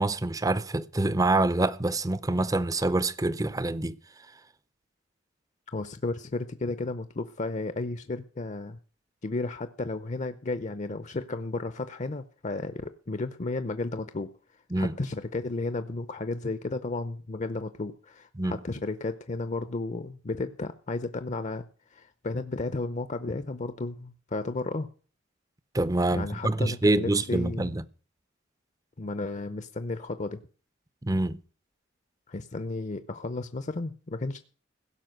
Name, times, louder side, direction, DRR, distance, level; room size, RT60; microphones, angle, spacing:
voice 1, 0.0-3.9 14.7-14.9 18.4-18.5 25.7-27.8 31.0-31.4, right 2 dB, 20° right, 0.6 m, -26 dB
voice 2, 5.7-8.8 9.2-14.3 14.8-24.9 26.1-27.7 29.0-30.4 32.3-34.4, left 3 dB, 40° left, 0.6 m, -33 dB
16.5 x 5.8 x 7.8 m
head